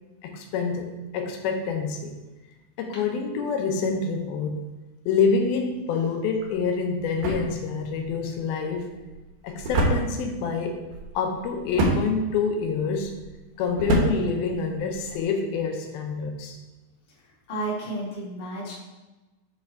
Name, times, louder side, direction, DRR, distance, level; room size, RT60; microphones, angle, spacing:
voice 1, 0.2-2.2 2.8-4.7 5.1-9.0 9.4-10.8 11.1-13.2 13.6-16.6, left 5 dB, 90° left, 3 dB, 2.7 m, -27 dB
sound 1, 6.4-15.2, right 1 dB, 70° right, 2.4 m, -29 dB
voice 2, 17.5-18.7, right 1 dB, 40° left, -7 dB, 2.4 m, -31 dB
10.0 x 3.4 x 4.3 m, 1.1 s
omnidirectional pair, 4.2 m